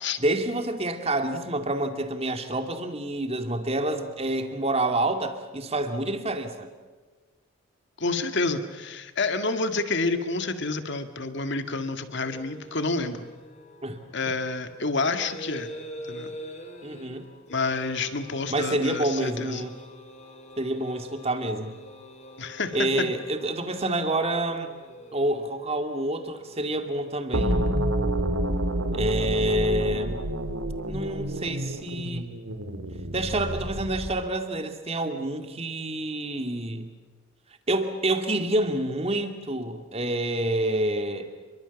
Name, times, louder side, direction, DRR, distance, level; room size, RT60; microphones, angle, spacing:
voice 1, 0.2-6.7 13.8-14.0 16.8-17.3 18.5-19.7 20.6-21.7 22.7-24.7 25.1-27.7 28.9-30.2 30.9-32.3 33.1-36.9 37.7-41.3, right 1 dB, 30° right, 6 dB, 2.4 m, -28 dB
voice 2, 8.0-13.2 14.1-15.7 16.1-16.3 17.5-19.6 22.4-23.1, left 3 dB, 55° left, 8 dB, 2.0 m, -28 dB
sound 1, 12.2-27.2, equal, 35° left, 2.8 m, -45 dB
sound 2, 27.3-34.2, right 1 dB, 85° right, 2.5 m, -28 dB
28.0 x 23.5 x 7.2 m, 1.4 s
head